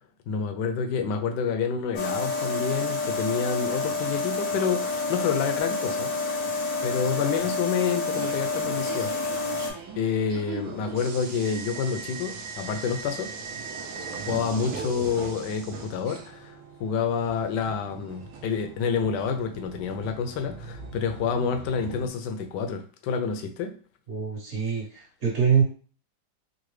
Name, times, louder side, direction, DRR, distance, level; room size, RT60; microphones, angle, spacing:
voice 1, 0.3-6.1 6.8-9.1 9.5-9.7 10.0-13.3 14.3-23.7, left 6 dB, 80° left, 5 dB, 1.2 m, -28 dB
sound 1, 1.9-9.7, left 3 dB, 60° left, 0.9 m, -29 dB
sound 2, 8.1-22.1, right 5 dB, 70° right, 1.1 m, -39 dB
voice 2, 24.1-25.6, right 7 dB, 45° right, -3 dB, 1.4 m, -24 dB
3.8 x 2.2 x 3.1 m, 0.40 s
omnidirectional pair, 1.9 m